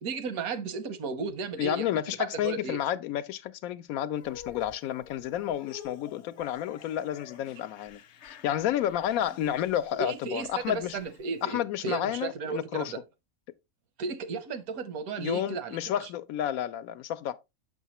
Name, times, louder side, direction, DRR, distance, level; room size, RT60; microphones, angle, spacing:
voice 1, 0.0-2.8 10.0-13.0 14.0-16.1, right 4 dB, 85° right, 1.3 m, -34 dB
voice 2, 1.6-8.0 8.3-11.0 11.4-12.9 15.2-17.3, left 11 dB, 85° left, 1.0 m, -31 dB
sound 1, 4.2-11.6, left 10 dB, 60° left, 0.8 m, -49 dB
6.4 x 6.1 x 2.9 m
omnidirectional pair, 1.5 m